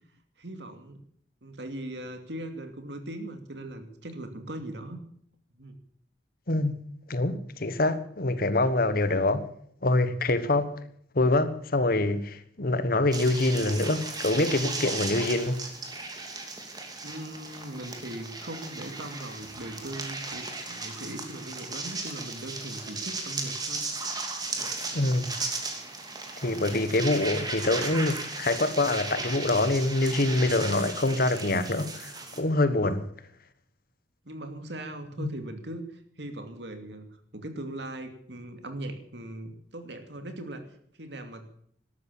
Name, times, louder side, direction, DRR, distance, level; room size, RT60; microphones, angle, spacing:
voice 1, 0.4-1.0 1.4-5.0 5.5-5.8 17.0-23.9 24.4-25.1 34.2-37.1 37.3-40.7 41.0-41.4, right 1 dB, 70° right, 2.6 m, -39 dB
voice 2, 6.5-6.8 7.1-9.4 9.8-10.8 11.1-15.7 24.9-25.3 26.4-33.1 35.2-35.3, left 2 dB, 55° left, 1.4 m, -25 dB
sound 1, 13.1-32.4, right 3 dB, 20° right, 2.8 m, -36 dB
13.0 x 13.0 x 8.6 m
head